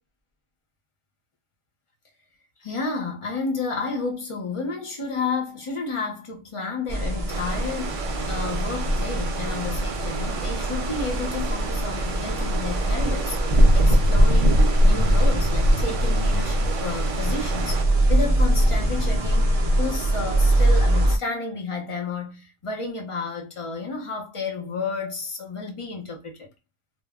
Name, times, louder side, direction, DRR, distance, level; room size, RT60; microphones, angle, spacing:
voice 1, 2.6-14.6 14.8-17.8 18.1-19.5 19.8-26.5, left 4 dB, 40° left, 0.5 m, -31 dB
sound 1, 6.9-21.2, right 1 dB, 50° right, 0.4 m, -21 dB
sound 2, 7.3-17.8, right 6 dB, 85° right, 0.9 m, -35 dB
2.1 x 2.0 x 3.4 m
omnidirectional pair, 1.2 m